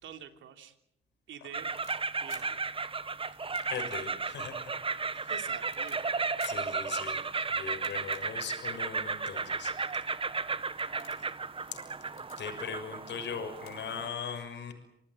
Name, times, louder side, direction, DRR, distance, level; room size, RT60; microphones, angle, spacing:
voice 1, 0.0-0.7 1.3-1.7 2.2-2.7 5.3-6.1, right 9 dB, 75° right, 7 dB, 3.3 m, -46 dB
sound 1, 1.3-2.4 3.3-3.6 3.9-4.0 4.4-4.5 5.1-6.0 6.4-6.6 7.7-8.2 8.9-9.0 9.8-9.9 10.3-10.5 10.8-11.3 12.0-12.4 13.2-13.3 13.5-13.7 14.0-14.1, left 10 dB, 85° left, 5.6 m, -52 dB
sound 2, 1.5-14.1, right 4 dB, 25° right, 1.3 m, -34 dB
voice 2, 3.7-4.7 5.1-5.3 6.4-7.2 7.5-9.7 12.4-14.7, left 6 dB, 65° left, 6 dB, 6.5 m, -39 dB
27.0 x 19.0 x 9.2 m, 0.77 s
cardioid pair, 90°, 20 cm